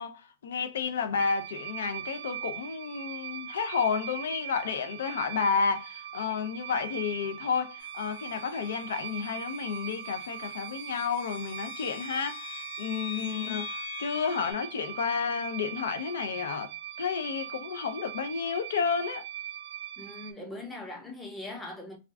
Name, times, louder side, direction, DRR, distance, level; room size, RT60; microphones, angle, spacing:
voice 1, 0.0-19.2, left 6 dB, 80° left, 0.5 m, -31 dB
sound 1, 1.2-20.3, right 12 dB, 55° right, 0.4 m, -41 dB
sound 2, 7.8-14.5, left 5 dB, 55° left, 0.9 m, -44 dB
voice 2, 13.1-13.6 20.0-22.0, left 2 dB, 5° left, 0.6 m, -41 dB
2.4 x 2.3 x 3.3 m
supercardioid pair, 170°, 0 cm